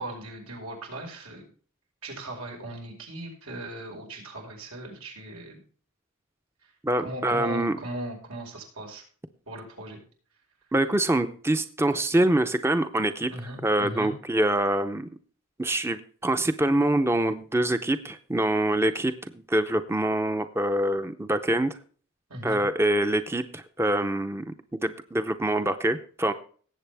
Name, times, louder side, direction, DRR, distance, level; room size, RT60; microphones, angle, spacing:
voice 1, 0.0-1.4 2.0-5.6 7.0-9.0 9.5-10.0 13.3-14.1 22.3-22.6, right 1 dB, 90° right, 1 dB, 5.3 m, -38 dB
voice 2, 6.8-7.8 10.7-13.3 13.6-15.1 15.6-21.8 22.4-26.3, right 1 dB, 10° right, 9 dB, 0.6 m, -25 dB
18.5 x 8.1 x 3.4 m, 0.43 s
head